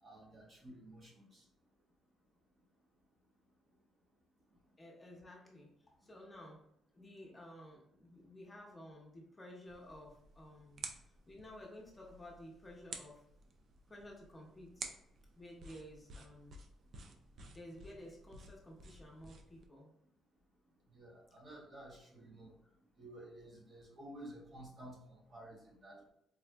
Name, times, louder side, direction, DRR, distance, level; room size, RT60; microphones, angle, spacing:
voice 1, 0.0-1.4 20.9-22.5 23.0-25.6 25.8-26.1, right 1 dB, 45° right, -3 dB, 1.1 m, -53 dB
voice 2, 4.8-6.6 6.9-10.8 11.3-13.2 13.9-14.9 15.4-16.6 17.5-19.9 22.6-22.7, left 1 dB, 20° left, -2 dB, 0.9 m, -53 dB
sound 1, 9.7-19.7, right 4 dB, 60° right, 0.4 m, -52 dB
4.1 x 2.4 x 2.2 m, 0.76 s
cardioid pair, 90°, 0 cm